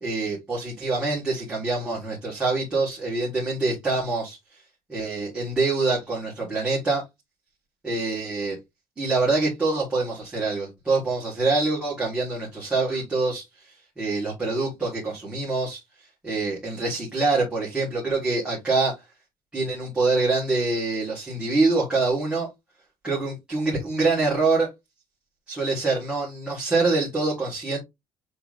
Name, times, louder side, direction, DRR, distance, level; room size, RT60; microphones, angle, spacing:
voice 1, 0.0-4.4 4.9-7.0 7.8-8.6 9.0-15.8 16.2-18.9 19.5-22.5 23.0-24.7 25.5-27.8, right 3 dB, 10° right, 1.5 m, -25 dB
6.7 x 2.9 x 2.5 m
cardioid pair, 180°, 9 cm